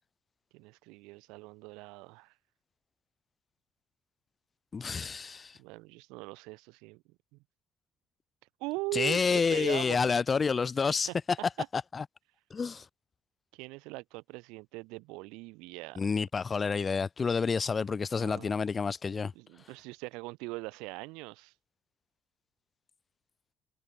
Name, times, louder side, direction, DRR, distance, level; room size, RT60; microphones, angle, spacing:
voice 1, 0.5-2.3 5.6-7.0 7.3-7.4 8.6-10.0 11.6-11.7 13.5-16.0 18.2-18.6 19.3-21.5, right 25 dB, 65° right, 0.7 m, -40 dB
voice 2, 4.7-5.6 8.9-11.1 11.7-12.0 12.5-12.8 16.0-19.3, left 5 dB, 35° left, 0.6 m, -29 dB
figure-of-eight pair, 50°, 0 cm